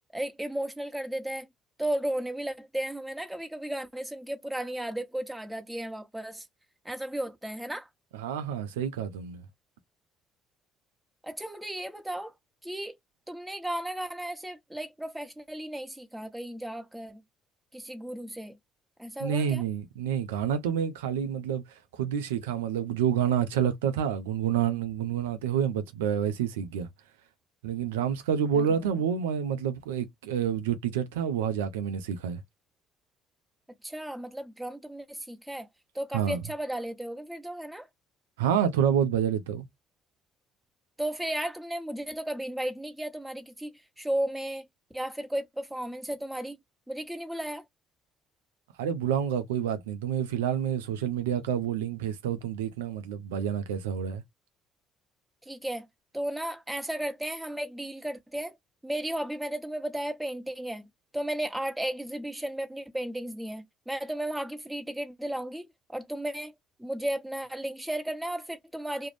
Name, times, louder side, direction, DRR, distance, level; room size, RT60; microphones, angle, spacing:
voice 1, 0.1-1.5 1.8-6.4 6.8-7.9 11.2-12.3 12.6-13.0 13.3-17.2 17.7-18.5 19.0-19.6 28.5-28.6 33.8-35.7 35.9-37.9 41.0-44.7 44.9-46.6 46.9-47.6 55.5-55.9 56.1-58.6 58.8-60.9 61.1-66.5 66.8-69.1, right 1 dB, 10° right, 0.9 m, -34 dB
voice 2, 8.1-9.4 19.2-26.9 27.6-32.4 36.1-36.4 38.4-39.7 48.8-54.2, right 8 dB, 85° right, 0.4 m, -28 dB
2.4 x 2.0 x 3.1 m
hypercardioid pair, 55°, 0 cm